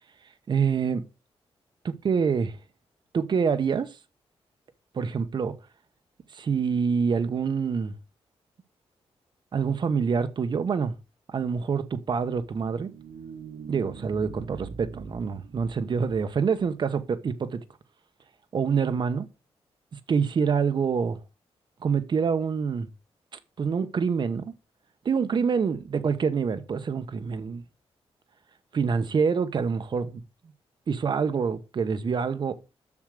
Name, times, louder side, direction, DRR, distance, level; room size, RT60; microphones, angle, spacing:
voice 1, 0.5-1.0 1.8-2.6 3.1-3.9 4.9-5.5 6.3-7.9 9.5-10.9 11.3-12.9 13.7-17.6 18.5-19.3 20.1-21.2 21.8-22.9 23.6-24.5 25.0-27.6 28.7-30.2 30.9-32.5, right 6 dB, 45° right, 1.1 m, -26 dB
sound 1, 12.4-16.7, right 5 dB, 85° right, 1.2 m, -43 dB
7.2 x 6.5 x 6.5 m
wide cardioid pair, 140°, 11 cm